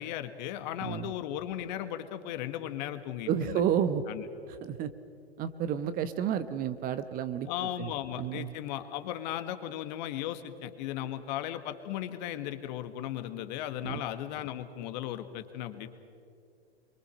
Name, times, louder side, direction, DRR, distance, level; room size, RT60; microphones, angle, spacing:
voice 1, 0.0-3.6 4.1-4.3 7.5-15.9, left 11 dB, 45° left, 9 dB, 1.7 m, -36 dB
voice 2, 0.8-1.1 3.3-4.0 4.6-4.9 5.4-7.5 7.8-7.9 8.2-8.5 13.8-14.0, right 9 dB, 30° right, 12 dB, 1.1 m, -30 dB
28.0 x 23.5 x 6.5 m, 2.4 s
figure-of-eight pair, 110°, 31 cm